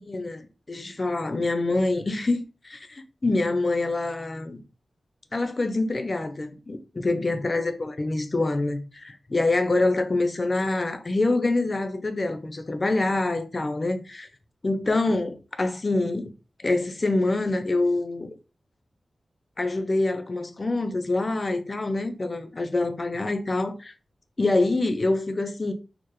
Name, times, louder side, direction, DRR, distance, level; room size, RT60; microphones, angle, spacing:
voice 1, 0.1-4.6 5.3-14.3 14.6-16.3 16.6-18.3 19.6-23.9 24.4-25.7, left 2 dB, 35° left, 0.5 m, -26 dB
4.6 x 2.0 x 3.0 m
wide cardioid pair, 115°, 0 cm